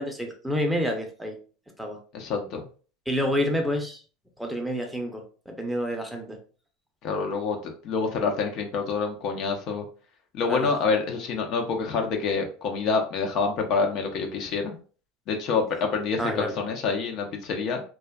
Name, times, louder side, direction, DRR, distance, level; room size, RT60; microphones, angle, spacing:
voice 1, 0.0-1.4 1.8-2.0 3.1-4.0 4.4-6.4 10.5-10.7 16.2-16.5, equal, 5° right, 3 dB, 0.6 m, -28 dB
voice 2, 2.1-2.6 7.0-9.8 10.3-14.8 15.3-17.8, left 4 dB, 55° left, 3 dB, 0.5 m, -27 dB
2.4 x 2.2 x 2.2 m, 0.39 s
hypercardioid pair, 95°, 0 cm